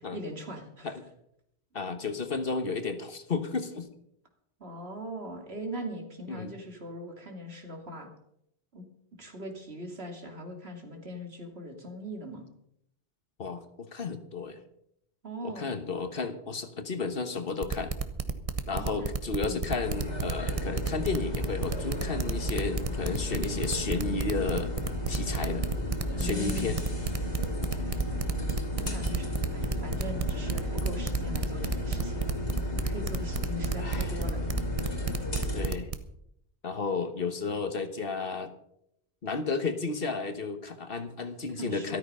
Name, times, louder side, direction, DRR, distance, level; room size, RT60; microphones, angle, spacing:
voice 1, 0.1-1.0 4.6-8.1 8.7-8.8 9.2-12.5 15.2-15.7 18.7-19.1 19.4-19.7 26.2-26.8 27.8-27.9 28.8-32.2 32.8-34.4 34.8-34.9 41.5-42.0, equal, 65° right, 3 dB, 2.8 m, -40 dB
voice 2, 1.7-3.9 6.3-6.5 13.4-14.6 15.4-17.9 18.7-24.7 25.1-25.7 26.2-26.8 33.8-34.2 35.5-35.9 36.6-38.5 39.2-42.0, left 4 dB, 55° left, 9 dB, 1.4 m, -32 dB
sound 1, 17.6-36.0, right 4 dB, 35° right, 1.0 m, -31 dB
sound 2, 19.8-35.7, left 1 dB, 85° left, 3.2 m, -33 dB
13.5 x 13.0 x 5.5 m, 0.76 s
omnidirectional pair, 1.1 m